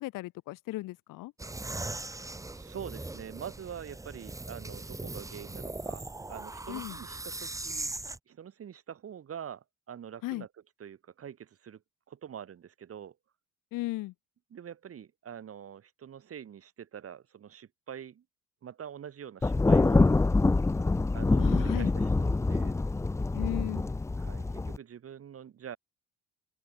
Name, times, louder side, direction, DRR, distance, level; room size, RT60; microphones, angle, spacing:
voice 1, 0.0-1.3 6.7-7.0 10.2-10.5 13.7-14.1 21.4-21.9 23.3-23.9, left 18 dB, 80° left, 1.4 m, -36 dB
sound 1, 1.4-8.2, right 2 dB, 10° right, 1.5 m, -39 dB
voice 2, 2.5-7.9 8.3-10.5 10.8-11.8 12.1-13.2 14.5-18.2 18.6-20.0 21.1-22.8 24.2-25.8, right 8 dB, 45° right, 7.0 m, -45 dB
Thunder, 19.4-24.8, left 3 dB, 10° left, 0.5 m, -25 dB
open air
cardioid pair, 125°, 32 cm